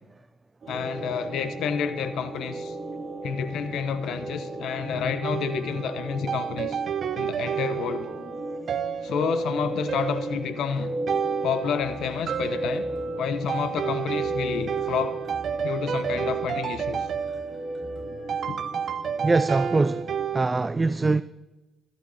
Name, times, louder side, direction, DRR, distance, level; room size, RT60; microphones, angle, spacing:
sound 1, 0.6-20.3, right 2 dB, 40° right, 4.4 m, -35 dB
voice 1, 0.7-2.8 3.2-6.8 7.1-8.1 9.0-10.9 11.4-12.9 13.2-15.2 15.6-17.1 18.5-18.6, left 7 dB, 75° left, 0.9 m, -29 dB
sound 2, 5.2-20.5, right 8 dB, 55° right, 0.8 m, -31 dB
sound 3, 11.8-18.4, right 1 dB, ahead, 4.5 m, -47 dB
voice 2, 19.2-21.2, right 3 dB, 25° right, 0.4 m, -23 dB
14.5 x 12.0 x 4.2 m
cardioid pair, 90°, 0 cm